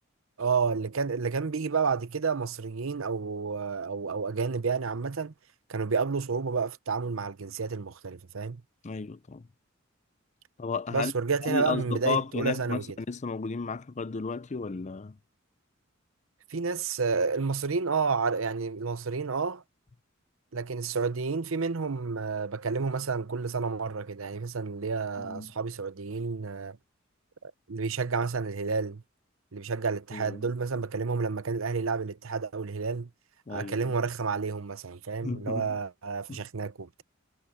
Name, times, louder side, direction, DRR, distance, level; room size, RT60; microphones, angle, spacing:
voice 1, 0.4-5.3 5.7-8.6 10.9-12.8 16.5-19.6 20.5-26.8 27.4-29.0 29.5-33.1 33.5-37.0, right 5 dB, 75° right, 0.8 m, -30 dB
voice 2, 8.8-9.5 10.6-11.1 11.4-15.2 25.2-25.5 30.1-30.5 33.5-33.9 35.2-35.8 36.3-36.4, left 4 dB, 35° left, 0.5 m, -33 dB
head